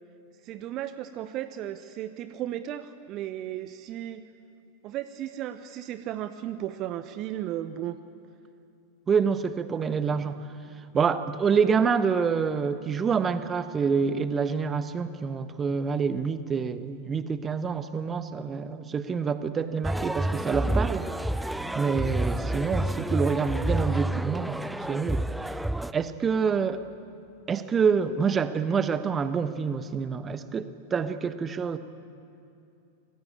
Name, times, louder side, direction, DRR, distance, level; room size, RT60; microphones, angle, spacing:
voice 1, 0.4-4.2 4.8-8.0, right 12 dB, 35° right, 11 dB, 1.0 m, -35 dB
voice 2, 9.1-10.5 10.9-21.1 21.5-25.2 25.9-26.8 27.5-31.8, right 6 dB, 20° right, 12 dB, 1.2 m, -27 dB
sound 1, 19.8-25.9, right 1 dB, 5° right, 0.6 m, -29 dB
27.0 x 21.0 x 8.7 m, 2.6 s
figure-of-eight pair, 90°, 0 cm